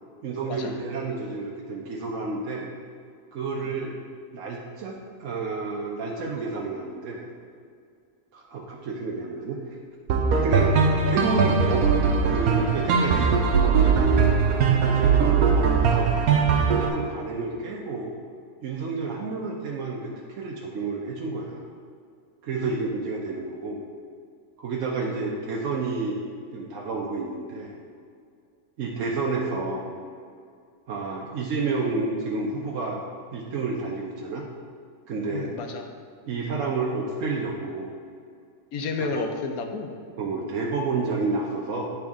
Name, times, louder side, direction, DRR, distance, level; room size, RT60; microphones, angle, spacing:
voice 1, 0.2-2.7 3.3-3.9 4.3-7.3 8.3-9.6 10.3-10.7 11.0-11.9 12.2-14.3 14.8-16.1 16.6-18.2 18.6-21.6 22.4-23.8 24.6-26.2 26.5-27.7 28.8-29.9 30.9-33.0 33.3-34.4 35.1-35.5 36.3-37.9 39.1-39.2 40.2-41.9, right 3 dB, 65° right, -3 dB, 1.0 m, -30 dB
sound 1, 10.1-16.9, right 5 dB, 85° right, 1.2 m, -20 dB
voice 2, 35.3-35.9 38.7-39.9, left 4 dB, 85° left, 4 dB, 1.1 m, -31 dB
9.7 x 3.5 x 3.6 m, 2.2 s
omnidirectional pair, 1.5 m